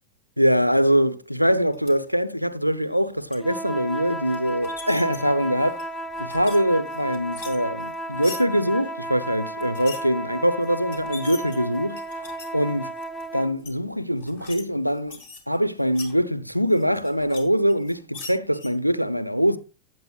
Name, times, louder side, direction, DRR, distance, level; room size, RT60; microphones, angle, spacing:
voice 1, 0.4-5.8 6.2-12.0 12.5-12.9 13.3-15.2 15.5-19.6, equal, 90° right, 0.6 m, -23 dB
sound 1, 1.7-1.9 2.8-3.4 4.3-5.2 5.6-6.6 6.9-8.4 9.6-10.0 10.6-10.7 10.9-12.5 13.0-13.2 13.6-13.7 14.2-14.6 14.9-16.1 16.7-17.4 17.7-18.7, left 4 dB, 55° left, 2.5 m, -41 dB
sound 2, 3.4-13.6, right 1 dB, 5° left, 0.9 m, -34 dB
15.5 x 9.3 x 2.3 m
figure-of-eight pair, 90°, 0 cm